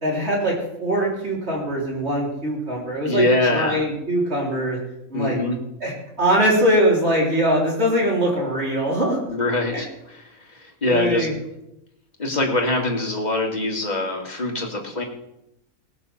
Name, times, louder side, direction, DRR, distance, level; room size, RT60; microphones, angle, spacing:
voice 1, 0.0-3.3 3.5-4.8 5.1-5.4 5.8-5.9 6.2-9.2 9.7-9.8 10.9-11.3, equal, 50° right, -4 dB, 4.1 m, -22 dB
voice 2, 3.0-3.8 5.1-5.6 9.3-11.3 12.2-15.0, left 2 dB, 30° left, 0 dB, 2.6 m, -23 dB
19.0 x 6.6 x 7.1 m, 0.86 s
omnidirectional pair, 1.5 m